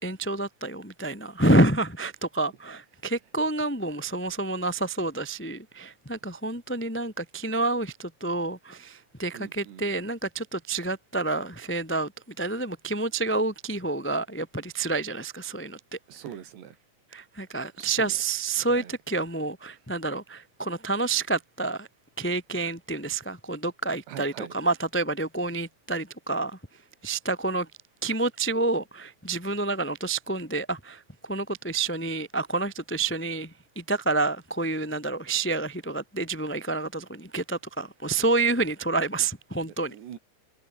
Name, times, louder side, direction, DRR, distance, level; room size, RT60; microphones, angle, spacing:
voice 1, 0.0-12.1 12.4-15.8 17.1-21.9 22.2-26.6 27.0-27.7 28.0-39.9, right 2 dB, 5° left, 0.8 m, -28 dB
voice 2, 9.3-9.9 16.1-16.8 17.8-18.2 18.6-18.9 24.1-24.5 39.9-40.2, right 9 dB, 75° right, 4.6 m, -42 dB
omnidirectional pair, 5.1 m